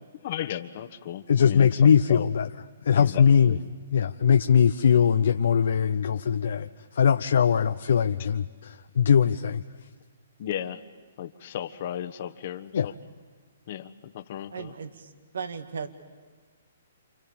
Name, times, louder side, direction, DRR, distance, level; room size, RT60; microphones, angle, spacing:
voice 1, 0.2-2.2 2.9-3.7 10.4-10.8 11.2-12.9 13.7-14.7, left 11 dB, 50° left, 10 dB, 1.4 m, -35 dB
voice 2, 1.3-2.5 2.8-3.5 3.9-9.6 12.7-12.9, left 7 dB, 65° left, 8 dB, 0.8 m, -21 dB
voice 3, 14.5-15.9, right 6 dB, 70° right, 9 dB, 2.0 m, -36 dB
28.5 x 28.5 x 7.2 m, 1.5 s
hypercardioid pair, 130°, 0 cm